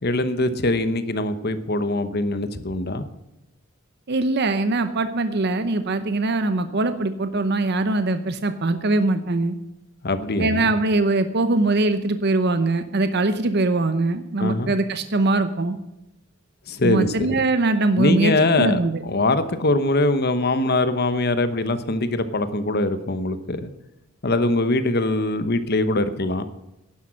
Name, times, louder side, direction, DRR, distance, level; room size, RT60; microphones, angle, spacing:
voice 1, 0.0-3.0 10.0-10.7 14.4-14.7 16.7-17.4 18.0-23.7 24.2-26.5, left 2 dB, 50° left, 11 dB, 1.0 m, -22 dB
voice 2, 4.1-9.6 10.4-15.8 16.8-19.0, right 2 dB, 50° right, 10 dB, 0.8 m, -22 dB
11.0 x 11.0 x 6.3 m, 0.91 s
head